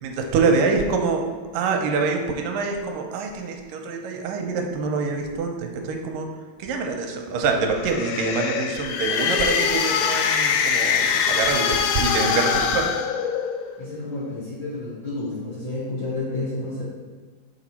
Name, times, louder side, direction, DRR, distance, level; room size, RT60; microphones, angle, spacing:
voice 1, 0.0-1.2 1.5-6.3 6.6-12.9, right 4 dB, 85° right, 3 dB, 2.3 m, -25 dB
sound 1, 7.7-13.8, left 6 dB, 80° left, 1.8 m, -23 dB
voice 2, 13.8-16.9, left 2 dB, 55° left, -8 dB, 1.5 m, -30 dB
6.5 x 5.1 x 4.3 m, 1.4 s
omnidirectional pair, 3.9 m